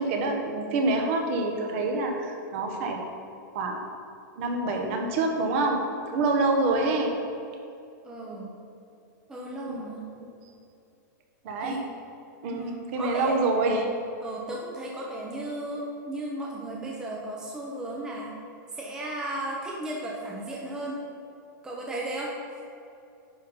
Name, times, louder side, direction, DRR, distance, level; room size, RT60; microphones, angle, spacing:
voice 1, 0.0-3.1 3.5-3.8 4.4-5.8 6.1-7.1 9.7-9.8 10.2-10.3 11.4-11.8 12.4-12.7 12.9-13.9, right 2 dB, 40° right, 3 dB, 1.1 m, -26 dB
voice 2, 8.0-8.6 9.3-10.1 11.6-11.8 12.5-12.7 13.0-13.4 14.2-18.3 18.7-21.0 21.6-22.6, right 1 dB, 5° right, -3 dB, 0.8 m, -35 dB
10.0 x 4.3 x 5.4 m, 2.6 s
supercardioid pair, 165°, 11 cm